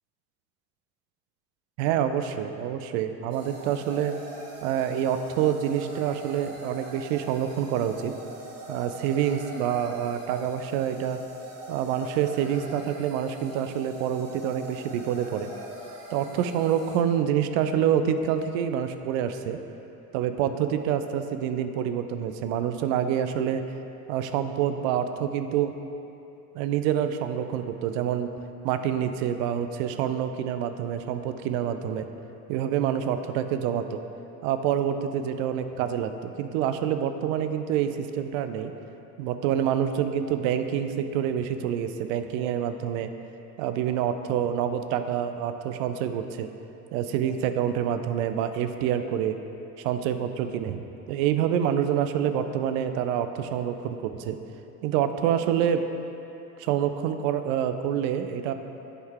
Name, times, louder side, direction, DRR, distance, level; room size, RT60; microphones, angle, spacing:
voice 1, 1.8-4.2 4.6-8.1 8.7-11.2 11.7-15.5 16.1-19.6 20.1-23.6 24.1-25.7 26.5-28.3 28.6-32.1 32.5-34.0 34.4-38.7 39.2-43.1 43.6-46.5 46.9-49.4 49.8-50.8 51.1-54.4 54.8-55.8 56.6-58.5, right 9 dB, 55° right, 9 dB, 0.6 m, -27 dB
sound 1, 3.3-17.0, right 1 dB, 80° right, 1.1 m, -42 dB
10.0 x 4.5 x 3.5 m, 2.9 s
hypercardioid pair, 70°, 47 cm